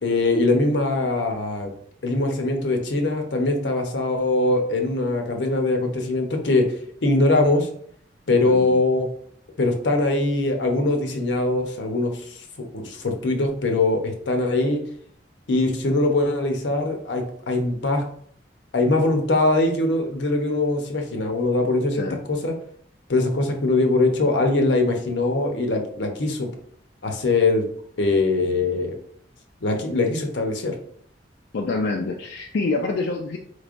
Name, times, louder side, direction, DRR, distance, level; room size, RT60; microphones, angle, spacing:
voice 1, 0.0-1.7 2.0-6.7 7.0-7.7 8.3-9.1 9.6-14.8 15.5-18.0 18.7-22.5 23.1-26.5 27.0-27.6 28.0-29.0 29.6-30.7, left 2 dB, 90° left, 4 dB, 0.8 m, -22 dB
voice 2, 8.5-8.8 21.9-22.2 31.5-33.4, left 3 dB, 70° left, 1 dB, 0.4 m, -26 dB
4.3 x 3.2 x 2.5 m, 0.62 s
head